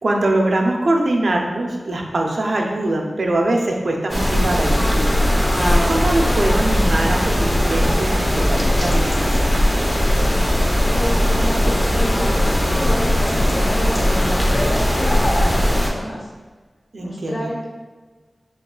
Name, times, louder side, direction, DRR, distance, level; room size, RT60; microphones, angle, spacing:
voice 1, 0.0-5.2 5.5-9.5 16.9-17.5, right 1 dB, 70° right, 1 dB, 0.6 m, -22 dB
sound 1, 4.1-15.9, equal, 15° left, 0.9 m, -18 dB
voice 2, 10.9-16.3 17.0-17.6, left 1 dB, 75° left, -3 dB, 1.2 m, -28 dB
6.7 x 3.0 x 2.3 m, 1.4 s
wide cardioid pair, 60°, 0 cm